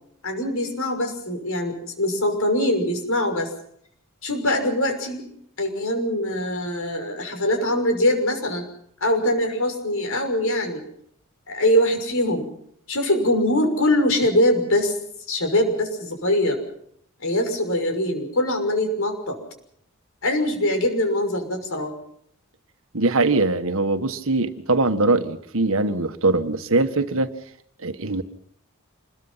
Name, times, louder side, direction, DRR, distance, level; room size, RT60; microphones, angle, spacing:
voice 1, 0.2-3.5 4.2-5.3 5.6-8.6 9.0-10.8 11.5-12.5 12.9-15.0 15.3-16.6 17.2-19.4 20.2-21.9, left 1 dB, 65° left, 6.2 m, -23 dB
voice 2, 22.9-27.3 27.8-28.2, right 2 dB, 65° right, 1.6 m, -22 dB
27.5 x 21.5 x 5.7 m
head